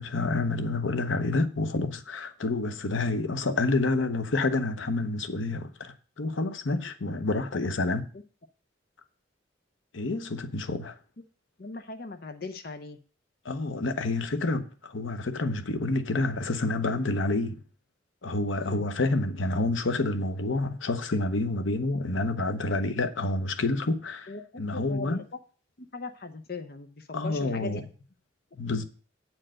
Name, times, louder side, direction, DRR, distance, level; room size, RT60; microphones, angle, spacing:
voice 1, 0.0-8.0 9.9-11.0 13.4-17.6 18.2-24.3 24.6-25.2 27.1-27.8 28.6-28.8, left 2 dB, 80° left, 0.9 m, -28 dB
voice 2, 11.6-13.0 18.6-18.8 24.3-25.4 25.9-27.9 28.7-28.8, left 3 dB, 50° left, 0.7 m, -39 dB
8.8 x 4.6 x 7.5 m
head